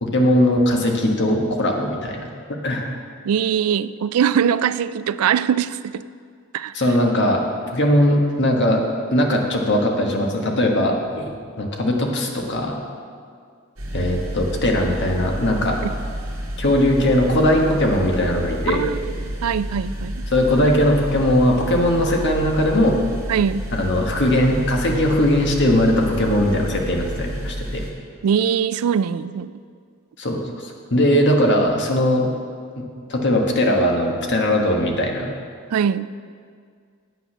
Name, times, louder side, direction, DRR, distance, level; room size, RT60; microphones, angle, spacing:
voice 1, 0.0-2.3 2.6-2.8 6.7-7.4 7.7-8.8 9.1-11.3 11.6-12.8 13.9-15.8 16.6-18.8 20.3-22.9 23.7-27.8 30.2-32.3 32.8-35.3, left 1 dB, 55° left, 1 dB, 1.4 m, -19 dB
voice 2, 3.2-6.0 6.5-6.7 15.8-15.9 18.7-19.0 19.4-20.2 23.3-23.6 28.2-29.5 35.7-36.1, right 8 dB, 85° right, 16 dB, 0.3 m, -21 dB
sound 1, 13.8-27.9, equal, 70° right, 1.9 m, -30 dB
9.3 x 8.0 x 6.1 m, 2.1 s
head